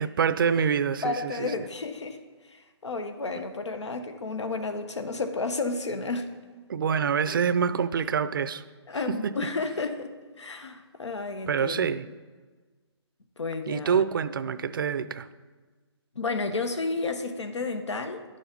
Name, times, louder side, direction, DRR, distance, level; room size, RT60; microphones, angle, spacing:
voice 1, 0.0-1.5 6.7-8.6 9.2-9.3 11.5-12.1 13.7-15.3, right 7 dB, 50° right, 14 dB, 0.5 m, -26 dB
voice 2, 1.0-2.2 2.4-6.3 8.9-12.0 13.4-14.0 16.1-18.2, left 3 dB, 85° left, 8 dB, 1.2 m, -32 dB
11.0 x 7.0 x 5.2 m, 1.4 s
hypercardioid pair, 155°, 14 cm